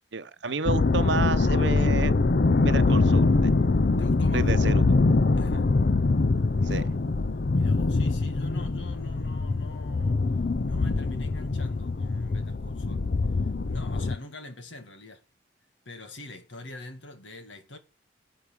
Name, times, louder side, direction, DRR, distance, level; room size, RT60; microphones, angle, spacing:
voice 1, 0.1-2.1 2.6-3.5 4.3-4.8 6.6-6.8, right 4 dB, 70° right, 0.8 m, -30 dB
sound 1, 0.7-14.2, left 3 dB, 55° left, 0.6 m, -23 dB
voice 2, 4.0-4.8 5.4-5.7 6.6-6.9 7.5-10.3 10.6-13.1 13.6-15.2 15.9-17.8, left 2 dB, 80° left, 1.9 m, -44 dB
11.0 x 5.6 x 7.1 m
head